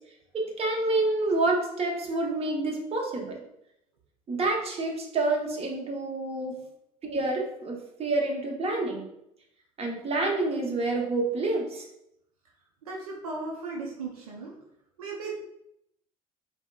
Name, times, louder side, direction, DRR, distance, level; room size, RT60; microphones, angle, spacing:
voice 1, 0.3-3.4 4.3-6.6 7.0-9.1 9.8-11.8, right 2 dB, 35° right, 0 dB, 0.9 m, -28 dB
voice 2, 12.8-14.6 15.0-15.4, right 3 dB, 85° right, -1 dB, 0.5 m, -36 dB
4.3 x 2.1 x 2.3 m, 0.78 s
hypercardioid pair, 60°, 18 cm